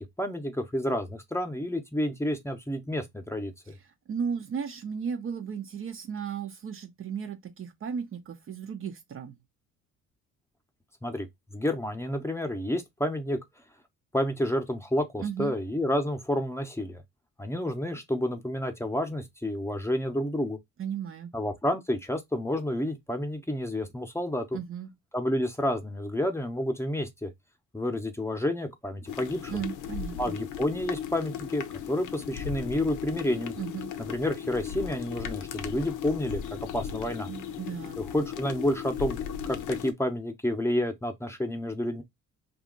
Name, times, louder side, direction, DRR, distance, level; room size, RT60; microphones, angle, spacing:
voice 1, 0.2-3.8 11.0-13.4 14.1-17.0 17.4-20.6 21.3-24.6 25.1-27.3 27.7-29.6 30.2-33.5 34.0-37.3 38.0-39.2 39.5-42.0, left 1 dB, 10° left, 0.7 m, -30 dB
voice 2, 4.1-9.4 15.2-15.6 20.8-21.3 24.5-24.9 29.5-30.4 33.6-33.9 37.3-38.0, right 7 dB, 45° right, 0.6 m, -35 dB
sound 1, 29.1-39.9, left 9 dB, 90° left, 0.6 m, -37 dB
2.8 x 2.4 x 3.7 m
cardioid pair, 90°, 30 cm